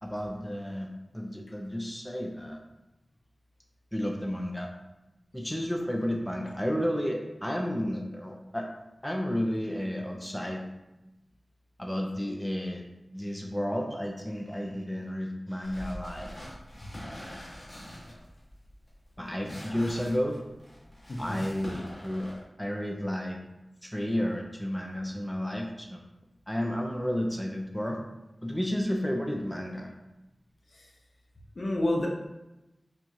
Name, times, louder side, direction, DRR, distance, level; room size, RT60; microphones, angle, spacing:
voice 1, 0.0-2.6 3.9-4.7 5.3-8.7 9.0-10.6 11.8-12.8 13.1-16.3 19.2-20.4 21.2-23.4 23.8-26.0 26.5-28.0 28.4-29.9, equal, 10° left, 1 dB, 0.4 m, -32 dB
sound 1, 15.6-22.4, equal, 50° left, 1.4 m, -44 dB
voice 2, 21.1-21.4 31.6-32.1, left 1 dB, 65° left, -1 dB, 0.6 m, -28 dB
4.4 x 2.3 x 2.7 m, 0.97 s
wide cardioid pair, 55°, 0 cm